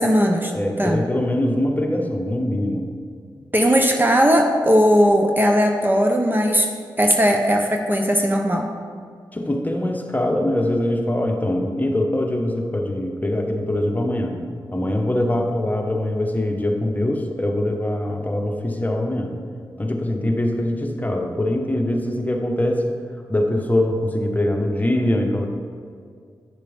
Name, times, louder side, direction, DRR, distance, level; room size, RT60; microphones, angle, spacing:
voice 1, 0.0-0.5 0.8-1.0 3.5-6.7 7.0-8.7, equal, 25° right, 2 dB, 0.9 m, -18 dB
voice 2, 0.5-2.9 9.3-14.4 14.7-19.3 19.8-22.9 23.3-25.5, left 1 dB, 20° left, 2 dB, 1.3 m, -23 dB
9.6 x 6.5 x 3.5 m, 2.2 s
supercardioid pair, 40°, 9 cm